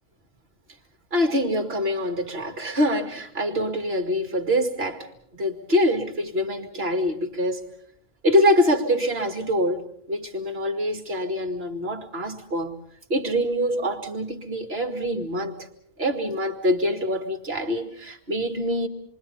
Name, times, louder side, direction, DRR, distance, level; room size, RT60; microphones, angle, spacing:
voice 1, 1.1-5.1 5.3-7.6 8.2-9.8 10.1-12.8 13.1-15.6 16.0-18.9, equal, 55° right, 5 dB, 2.6 m, -24 dB
28.0 x 23.5 x 5.7 m, 0.69 s
omnidirectional pair, 1.2 m